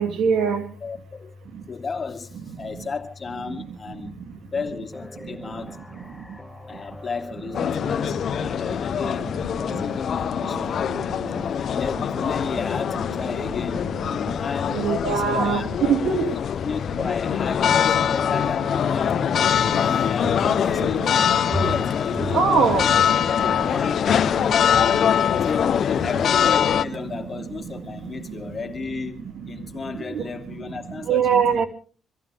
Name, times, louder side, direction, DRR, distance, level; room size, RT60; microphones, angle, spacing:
voice 1, 0.0-0.6 14.7-16.3 19.7-19.8 20.4-20.5 22.3-22.9 27.4-27.5 29.9-30.3 31.0-31.6, right 6 dB, 65° right, 2.6 m, -22 dB
voice 2, 0.8-1.4 1.7-5.9 6.7-10.8 11.3-13.9 14.4-15.7 16.6-19.2 19.6-21.1 21.4-23.0 23.4-24.3 25.4-31.6, left 5 dB, 35° left, 2.9 m, -33 dB
sound 1, 4.9-12.9, left 1 dB, 5° left, 4.7 m, -45 dB
sound 2, 7.5-26.9, left 8 dB, 60° left, 0.9 m, -23 dB
Walk footsteps, 19.4-23.8 24.0-24.4 24.7-27.0 27.3-27.4, equal, 50° right, 3.8 m, -34 dB
25.5 x 16.0 x 3.5 m
cardioid pair, 90°, 0 cm